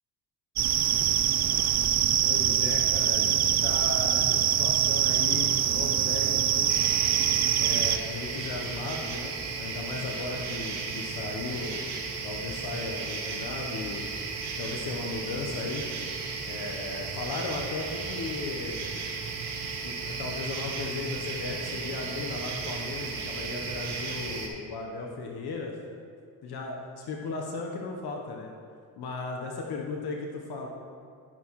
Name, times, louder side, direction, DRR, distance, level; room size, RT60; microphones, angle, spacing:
sound 1, 0.6-8.0, right 10 dB, 45° right, 0.5 m, -24 dB
voice 1, 2.2-6.7 7.5-11.9 12.2-14.1 14.6-15.9 16.5-18.9 19.8-25.8 26.4-28.5 29.0-30.7, left 3 dB, 70° left, 1 dB, 1.0 m, -36 dB
sound 2, 6.7-24.5, right 4 dB, 80° right, 1.3 m, -35 dB
12.0 x 5.9 x 3.0 m, 2.4 s
supercardioid pair, 60°, 39 cm